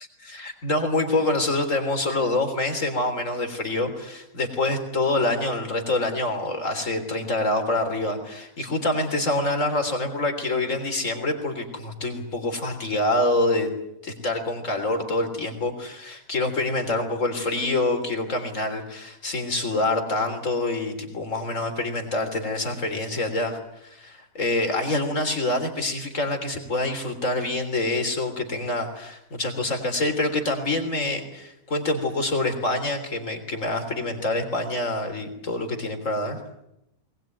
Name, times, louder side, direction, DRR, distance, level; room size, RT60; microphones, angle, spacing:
voice 1, 0.3-13.7 14.0-36.4, left 2 dB, 55° left, 5 dB, 3.9 m, -26 dB
21.5 x 20.0 x 9.3 m, 0.82 s
omnidirectional pair, 1.6 m